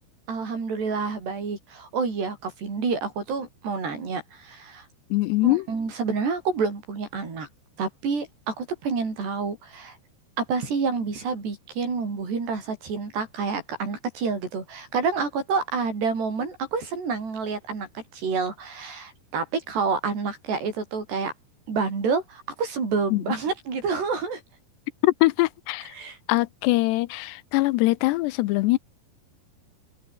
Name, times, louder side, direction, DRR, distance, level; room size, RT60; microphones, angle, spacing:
voice 1, 0.3-4.9 5.4-7.5 7.8-10.0 10.4-21.3 21.7-24.4 25.9-26.2, right 5 dB, 80° right, 9.0 m, -28 dB
voice 2, 5.1-5.6 23.1-23.2 25.0-25.9 26.3-28.8, left 20 dB, 85° left, 2.9 m, -22 dB
omnidirectional pair, 4.8 m